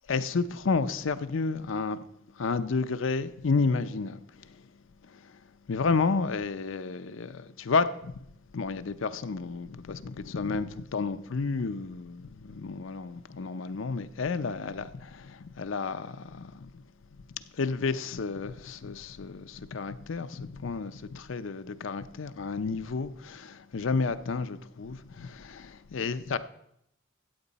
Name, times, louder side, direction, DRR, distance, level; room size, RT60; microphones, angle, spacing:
voice 1, 0.1-2.1 2.3-4.6 5.1-5.4 5.7-8.3 8.5-16.8 17.5-26.4, left 4 dB, 70° left, 0.6 m, -31 dB
14.0 x 8.2 x 4.1 m
head